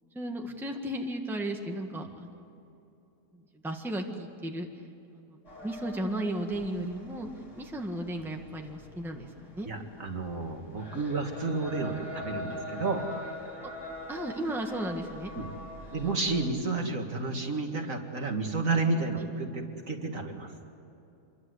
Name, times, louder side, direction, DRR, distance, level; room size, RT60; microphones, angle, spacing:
voice 1, 0.1-2.5 3.6-4.7 5.1-7.3 7.5-9.7 14.1-15.3, right 1 dB, ahead, 2 dB, 1.6 m, -35 dB
sound 1, 5.4-16.5, left 1 dB, 45° left, 4.4 m, -43 dB
voice 2, 9.7-13.1 15.3-15.5 15.9-20.5, right 3 dB, 55° right, 3 dB, 2.5 m, -31 dB
27.0 x 23.0 x 8.1 m, 2.8 s
omnidirectional pair, 1.8 m